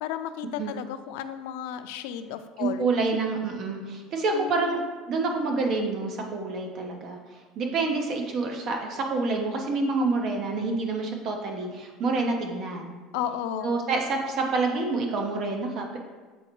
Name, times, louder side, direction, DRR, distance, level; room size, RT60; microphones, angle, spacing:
voice 1, 0.0-2.9 4.3-4.9 13.1-13.8, left 10 dB, 85° left, 9 dB, 0.4 m, -33 dB
voice 2, 2.6-4.8 5.1-7.2 7.6-13.0 13.6-16.0, right 3 dB, 40° right, 2 dB, 0.8 m, -27 dB
8.0 x 3.9 x 3.0 m, 1.4 s
cardioid pair, 170°, 0 cm